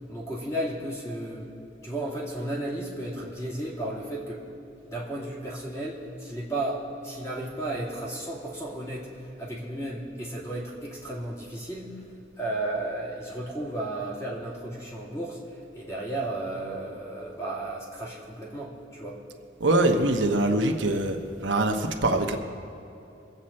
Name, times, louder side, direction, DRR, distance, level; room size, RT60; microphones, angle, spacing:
voice 1, 0.0-1.5 1.8-4.4 4.9-11.9 12.4-19.2, right 1 dB, 15° left, -4 dB, 2.4 m, -34 dB
voice 2, 19.6-22.4, right 2 dB, 80° right, 3 dB, 1.1 m, -23 dB
23.5 x 8.1 x 4.3 m, 2.8 s
head